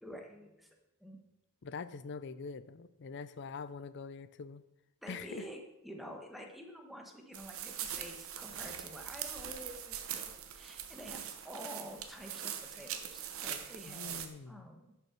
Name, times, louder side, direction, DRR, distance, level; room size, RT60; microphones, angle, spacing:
voice 1, 0.0-0.7 1.0-1.2 5.0-15.0, equal, ahead, 2 dB, 1.3 m, -49 dB
voice 2, 1.6-4.6 5.1-5.4 13.9-14.7, left 5 dB, 55° left, 15 dB, 0.5 m, -44 dB
sound 1, 7.3-14.3, right 9 dB, 65° right, 1.0 m, -42 dB
10.5 x 5.6 x 5.9 m, 0.93 s
head